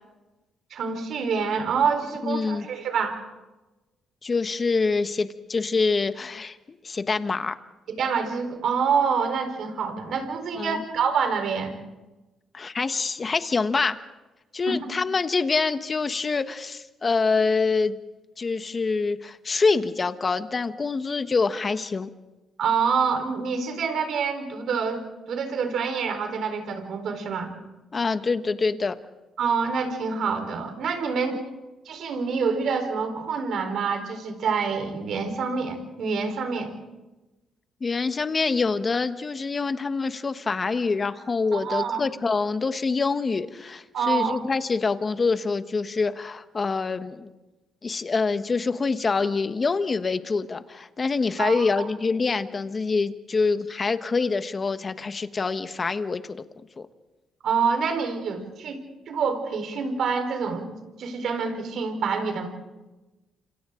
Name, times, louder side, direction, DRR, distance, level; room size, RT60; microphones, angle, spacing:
voice 1, 0.7-3.2 7.9-11.7 14.7-14.8 22.6-25.0 25.3-27.5 29.4-31.4 31.9-36.7 41.5-42.1 43.9-44.4 51.4-51.7 57.4-60.7 61.0-62.5, right 5 dB, 70° right, 5 dB, 4.3 m, -26 dB
voice 2, 2.2-2.7 4.2-6.6 6.8-7.6 10.5-10.8 12.5-14.0 14.5-18.0 18.4-22.1 27.9-29.0 37.8-47.3 47.8-56.4 56.8-56.9, left 4 dB, 35° left, 10 dB, 1.3 m, -25 dB
29.0 x 27.0 x 3.8 m, 1.1 s
cardioid pair, 90°, 0 cm